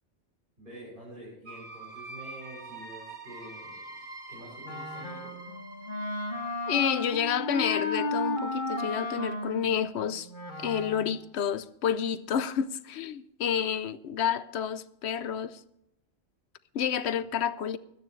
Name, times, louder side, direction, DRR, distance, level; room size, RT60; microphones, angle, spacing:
voice 1, 0.6-3.9 4.3-5.4, right 1 dB, 50° right, 7.0 m, -47 dB
sound 1, 1.4-9.0, right 2 dB, 70° right, 1.8 m, -46 dB
Wind instrument woodwind instrument, 4.6-11.2, left 2 dB, 45° left, 2.2 m, -34 dB
voice 2, 6.7-10.3 10.6-15.6 16.7-17.8, left 8 dB, 75° left, 0.9 m, -29 dB
24.0 x 9.4 x 3.2 m
omnidirectional pair, 1.2 m